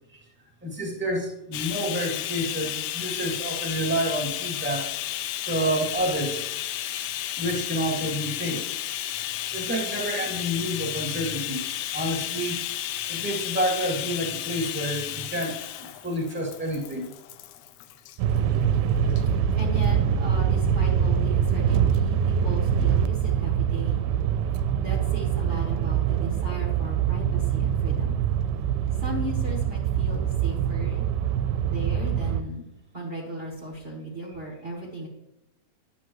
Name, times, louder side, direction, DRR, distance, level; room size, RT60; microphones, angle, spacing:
voice 1, 0.6-4.9 5.5-6.4 7.4-8.6 9.5-11.6 11.9-12.6 13.1-17.1, equal, 5° right, -1 dB, 1.6 m, -29 dB
Bathtub (filling or washing), 1.5-18.2 19.1-19.2 19.6-19.7, left 13 dB, 80° left, 1.8 m, -32 dB
sound 1, 18.2-32.4, right 8 dB, 80° right, 2.0 m, -24 dB
voice 2, 19.6-24.1 24.8-28.2 29.0-31.1 31.6-32.7 32.9-35.1, right 1 dB, 35° right, -4 dB, 1.0 m, -36 dB
11.0 x 8.1 x 3.1 m, 0.92 s
omnidirectional pair, 3.8 m